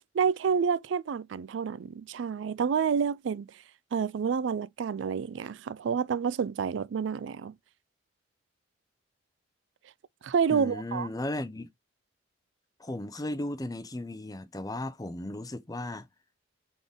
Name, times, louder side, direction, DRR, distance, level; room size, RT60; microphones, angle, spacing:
voice 1, 0.0-3.5 3.9-7.5 10.2-11.1, right 6 dB, 80° right, 0.4 m, -29 dB
voice 2, 10.5-11.7 12.8-16.1, left 1 dB, 20° left, 0.6 m, -35 dB
3.8 x 3.8 x 3.5 m
head